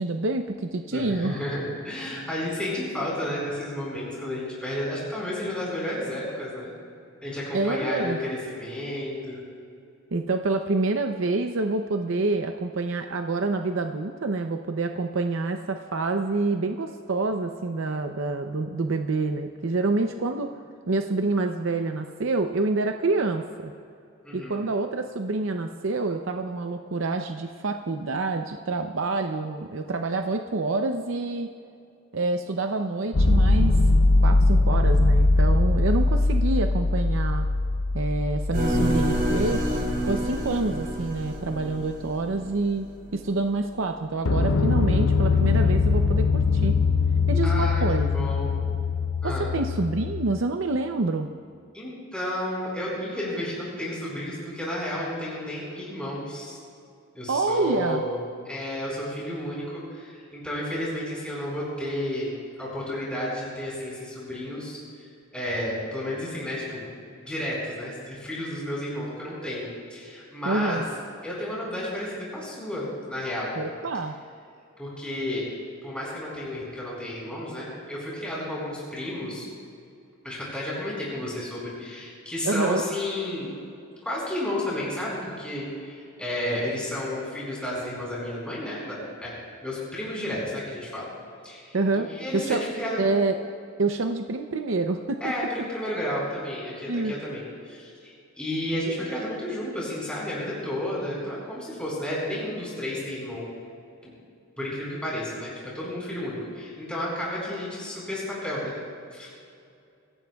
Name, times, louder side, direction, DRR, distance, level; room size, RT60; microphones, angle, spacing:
voice 1, 0.0-1.4 7.5-8.2 10.1-20.5 20.9-23.7 24.3-31.5 32.1-33.8 34.2-37.5 37.9-39.7 40.0-42.9 43.1-46.8 47.3-48.3 49.2-51.3 57.3-58.0 70.4-70.9 73.6-74.1 82.5-82.8 91.7-92.1 92.3-92.6 93.0-93.4 93.8-95.3 96.9-97.1, right 3 dB, 65° right, 5 dB, 0.6 m, -27 dB
voice 2, 0.9-6.7 7.2-9.4 24.2-24.6 47.4-48.5 49.2-49.5 51.7-56.6 57.1-58.2 58.5-62.3 62.6-65.0 65.3-66.8 67.2-70.8 71.2-73.6 74.8-75.5 75.8-79.4 80.2-83.5 84.0-89.4 89.6-91.1 91.4-93.0 95.2-103.5 104.0-104.1 104.6-108.8 109.1-109.3, left 1 dB, 5° left, -6 dB, 4.5 m, -32 dB
sound 1, 33.1-41.0 44.3-50.3, left 3 dB, 75° left, 0.7 m, -22 dB
sound 2, 38.5-42.5, equal, 45° right, 3.5 m, -28 dB
26.5 x 16.5 x 2.4 m, 2.5 s
head